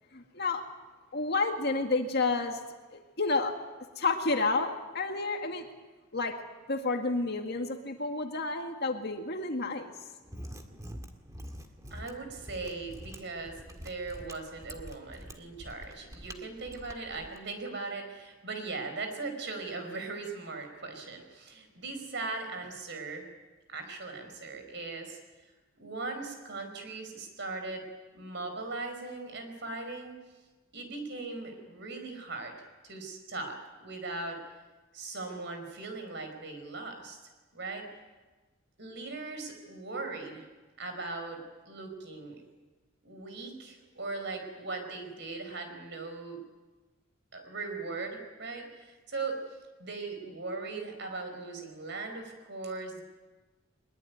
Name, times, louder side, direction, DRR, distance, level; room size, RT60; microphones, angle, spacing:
voice 1, 0.1-0.6 1.1-2.6 2.9-3.5 4.0-5.7 6.1-6.4 6.7-9.9, left 3 dB, 50° left, 4 dB, 2.0 m, -30 dB
Mechanisms, 10.2-17.4, equal, 15° right, 1.9 m, -46 dB
voice 2, 11.9-23.3 23.7-25.2 25.8-27.9 28.1-30.2 30.7-32.6 32.8-34.4 34.9-37.2 37.5-37.9 38.8-40.5 40.8-42.4 43.0-46.4 47.3-53.0, right 3 dB, 55° right, 6 dB, 5.2 m, -39 dB
22.5 x 21.5 x 9.5 m, 1.2 s
head